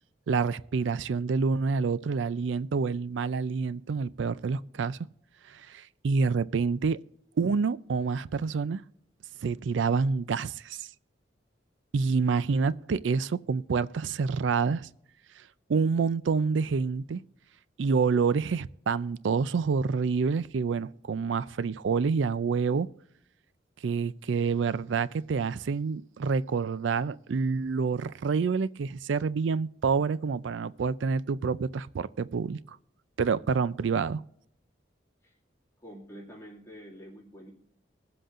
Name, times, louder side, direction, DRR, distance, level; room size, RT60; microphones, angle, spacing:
voice 1, 0.3-5.0 5.5-7.0 7.4-8.8 9.4-10.9 11.9-14.9 15.7-17.2 17.8-22.9 23.8-32.8 33.2-34.2, right 5 dB, 85° right, 0.4 m, -27 dB
voice 2, 35.8-37.5, equal, 15° left, 2.1 m, -47 dB
23.0 x 7.7 x 2.5 m
head